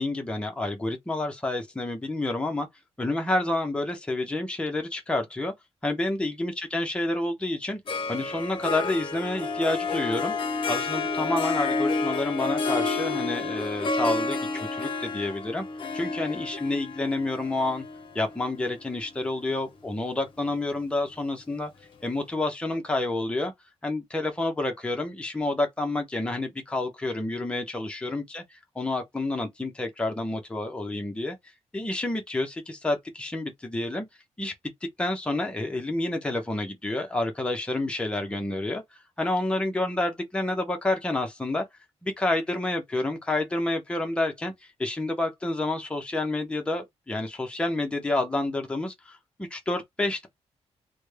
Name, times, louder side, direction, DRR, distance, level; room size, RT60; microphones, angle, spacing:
voice 1, 0.0-2.7 3.0-5.5 5.8-7.8 8.1-10.3 10.7-15.6 15.9-17.8 18.1-21.7 22.0-23.5 23.8-28.4 28.8-31.4 31.7-34.0 34.4-34.5 35.0-38.8 39.2-41.6 42.0-44.5 44.8-50.3, left 2 dB, 10° left, 0.8 m, -29 dB
Harp, 7.9-19.3, left 3 dB, 45° left, 0.8 m, -30 dB
3.3 x 2.2 x 3.2 m
wide cardioid pair, 160°, 11 cm